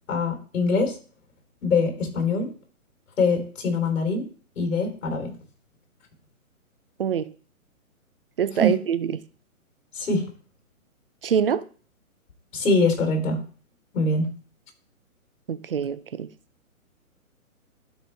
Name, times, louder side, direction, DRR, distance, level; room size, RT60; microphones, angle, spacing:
voice 1, 0.1-1.0 1.6-2.5 3.2-4.2 4.6-5.3 8.6-8.7 9.9-10.3 12.5-13.4 13.9-14.3, left 3 dB, 60° left, 3.8 m, -23 dB
voice 2, 7.0-7.3 8.4-9.2 11.2-11.6 15.5-16.3, right 8 dB, 40° right, 0.5 m, -25 dB
12.5 x 4.7 x 3.4 m
hypercardioid pair, 165°, 43 cm